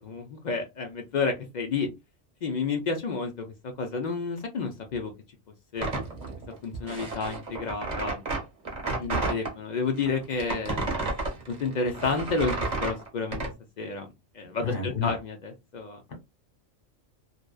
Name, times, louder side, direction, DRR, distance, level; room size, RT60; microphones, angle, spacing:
voice 1, 0.0-1.9 2.4-3.5 3.8-5.1 5.7-5.9 6.6-8.2 8.9-10.9 11.5-12.5 12.8-13.4 13.8-16.0, left 4 dB, 60° left, 4 dB, 0.5 m, -30 dB
sound 1, 5.8-9.5 10.0-13.5, right 3 dB, 40° right, 0.8 m, -31 dB
voice 2, 14.6-15.1, left 6 dB, 80° left, 2 dB, 1.4 m, -29 dB
2.6 x 2.2 x 2.2 m, 0.23 s
omnidirectional pair, 1.2 m